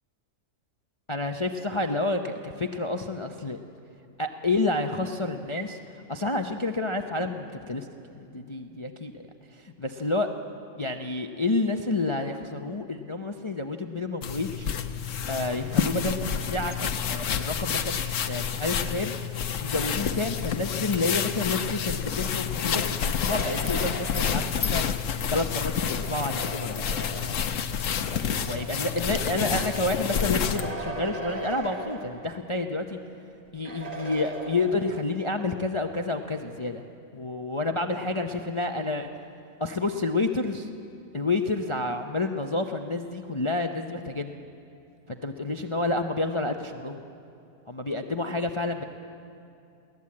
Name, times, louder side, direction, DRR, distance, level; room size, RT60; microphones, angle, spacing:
voice 1, 1.1-3.6 4.2-5.8 6.1-7.9 8.1-9.2 9.5-10.3 10.8-14.7 15.3-19.1 19.6-27.4 28.1-33.0 33.5-36.8 37.1-39.1 39.6-40.7 41.1-44.3 45.1-47.0 47.7-48.8, left 2 dB, 40° left, 6 dB, 0.4 m, -29 dB
sound 1, 14.2-30.7, left 7 dB, 60° left, 1.1 m, -29 dB
sound 2, 22.9-27.5 28.4-32.6 32.9-33.0 33.6-35.2, right 2 dB, 30° right, 2.6 m, -39 dB
22.5 x 17.0 x 8.6 m, 2.6 s
omnidirectional pair, 1.7 m